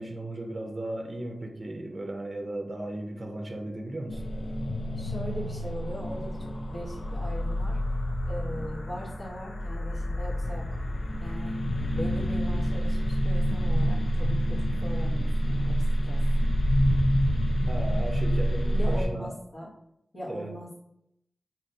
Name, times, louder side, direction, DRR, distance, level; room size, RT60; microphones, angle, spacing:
voice 1, 0.0-4.2 17.7-19.3 20.3-20.5, right 1 dB, 40° right, 3 dB, 0.5 m, -36 dB
sound 1, 4.1-19.1, equal, 80° left, 0.4 m, -27 dB
voice 2, 4.9-7.8 8.2-10.8 11.2-11.6 11.9-16.2 18.7-19.7 20.1-20.8, equal, 60° left, -6 dB, 1.0 m, -39 dB
3.3 x 2.8 x 2.7 m, 0.77 s
wide cardioid pair, 70°, 0 cm